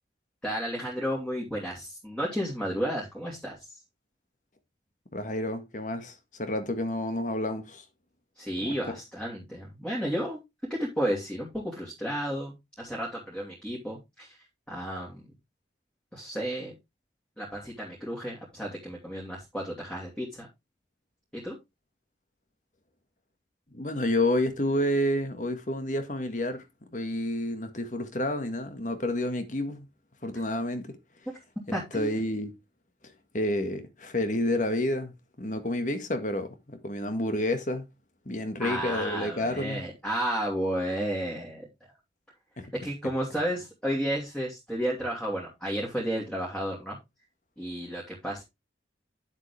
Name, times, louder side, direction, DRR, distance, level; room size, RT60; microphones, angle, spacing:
voice 1, 0.4-3.8 8.4-10.4 10.7-14.4 14.7-15.2 16.1-16.7 17.4-20.5 21.3-21.6 31.7-32.1 38.6-41.7 42.8-47.0 47.6-48.4, equal, 5° left, 2.8 m, -32 dB
voice 2, 5.1-7.8 8.6-9.0 23.7-26.6 26.9-29.9 30.2-31.0 31.7-32.5 33.0-37.9 38.3-39.8 42.6-42.7, left 1 dB, 45° left, 1.7 m, -30 dB
10.0 x 7.5 x 3.4 m
head